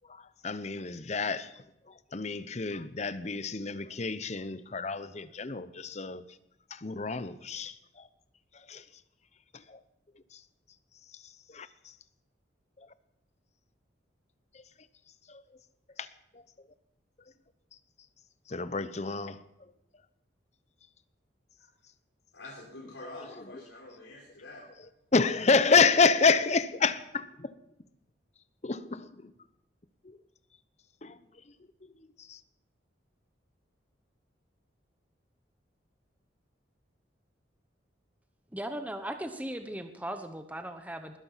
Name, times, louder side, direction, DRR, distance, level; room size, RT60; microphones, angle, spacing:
voice 1, 0.1-6.2 6.7-8.1 8.5-8.9 9.5-9.8 10.3-10.4 11.1-12.0 12.8-12.9 14.5-14.6 15.3-15.4 16.0-16.1 16.3-16.4 18.5-19.7 23.1-23.6 25.1-27.5 28.6-29.3 30.0-30.2 31.0-31.2 31.8-32.4, left 4 dB, 35° left, 0.8 m, -29 dB
voice 2, 22.3-24.6, left 1 dB, 85° left, 4.1 m, -46 dB
voice 3, 38.5-41.2, right 1 dB, 10° right, 1.0 m, -38 dB
20.5 x 12.0 x 5.8 m
head